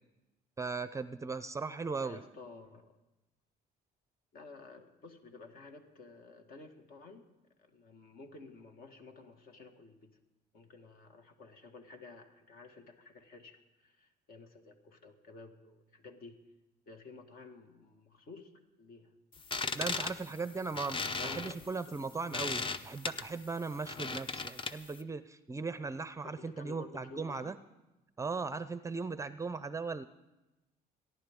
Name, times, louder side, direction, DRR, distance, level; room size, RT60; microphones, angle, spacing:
voice 1, 0.6-2.2 19.7-27.6 28.2-30.0, right 4 dB, 20° right, 13 dB, 0.5 m, -38 dB
voice 2, 2.0-3.0 4.3-7.3 7.6-10.2 10.5-16.4 16.9-19.2 19.8-20.5 21.2-22.0 26.2-27.5, left 3 dB, 60° left, 5 dB, 1.9 m, -53 dB
sound 1, 19.3-25.0, left 4 dB, 30° left, 0.7 m, -37 dB
29.5 x 11.0 x 3.7 m, 0.99 s
cardioid pair, 110°, 17 cm